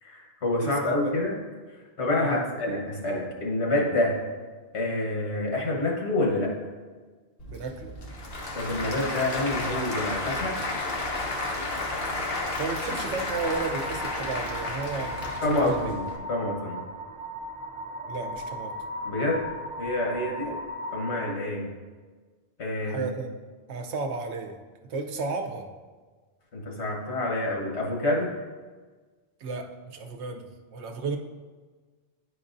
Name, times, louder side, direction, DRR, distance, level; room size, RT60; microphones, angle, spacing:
voice 1, 0.0-1.4 2.0-4.2 4.7-6.5 8.5-10.6 15.4-16.0 16.3-16.8 19.0-19.5 19.8-20.5 20.9-21.7 22.6-23.0 26.5-28.3, left 1 dB, 80° left, -1 dB, 1.5 m, -27 dB
voice 2, 0.6-1.2 2.2-2.5 7.5-7.9 12.6-16.0 18.1-18.8 20.4-20.6 22.8-23.3 23.7-25.7 29.4-31.2, right 4 dB, 80° right, 5 dB, 0.9 m, -34 dB
Applause / Crowd, 7.4-16.2, left 2 dB, 60° left, 1.1 m, -32 dB
sound 1, 13.3-21.4, equal, 45° right, 0.5 m, -37 dB
9.8 x 4.6 x 2.6 m, 1.4 s
omnidirectional pair, 1.1 m